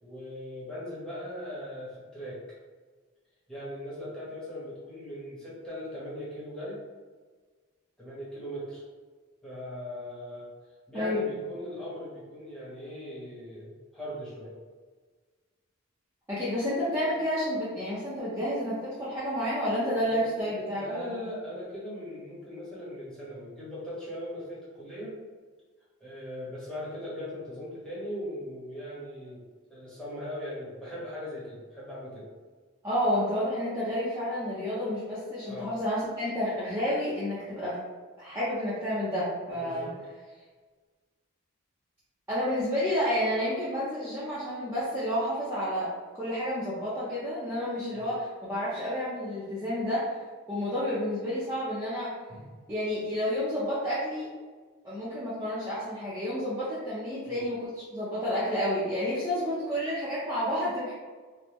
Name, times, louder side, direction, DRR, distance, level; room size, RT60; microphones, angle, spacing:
voice 1, 0.0-2.4 3.5-6.8 8.0-8.8 9.4-10.5 10.9-14.5 20.1-25.2 26.0-29.4 29.7-32.3 35.5-35.7 39.6-40.0 47.9-48.1 52.3-52.5 57.3-57.4, equal, 5° left, -9 dB, 1.0 m, -39 dB
voice 2, 16.3-21.0 32.8-37.8 38.2-39.9 42.3-50.2 50.5-52.1 52.7-54.3 54.8-60.9, equal, 10° right, -12 dB, 0.6 m, -30 dB
3.4 x 2.1 x 3.0 m, 1.5 s
head